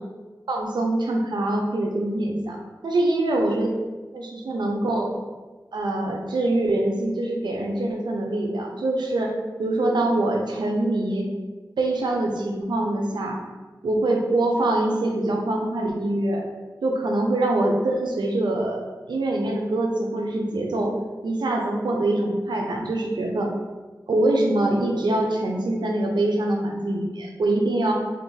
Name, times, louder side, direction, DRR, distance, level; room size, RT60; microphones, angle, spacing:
voice 1, 0.5-2.6 2.8-3.7 4.1-5.1 5.7-9.3 9.6-11.3 11.8-13.4 13.8-16.4 16.8-18.8 19.1-21.0 21.2-23.5 24.1-27.9, right 2 dB, 90° right, 1 dB, 0.5 m, -24 dB
2.5 x 2.3 x 3.8 m, 1.3 s
wide cardioid pair, 55°, 7 cm